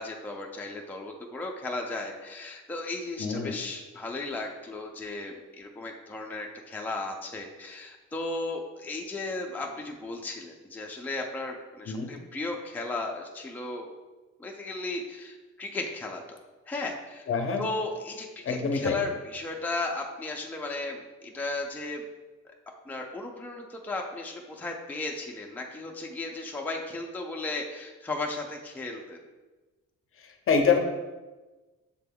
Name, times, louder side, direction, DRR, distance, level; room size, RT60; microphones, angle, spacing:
voice 1, 0.0-13.9 14.4-16.4 16.7-17.3 17.6-22.1 22.9-29.2, left 2 dB, 5° left, 0 dB, 0.5 m, -35 dB
voice 2, 3.2-3.6 11.9-12.2 17.3-17.6 18.5-19.0 30.5-30.8, left 5 dB, 45° left, 4 dB, 0.6 m, -25 dB
7.0 x 3.3 x 2.2 m, 1.2 s
cardioid pair, 90°, 30 cm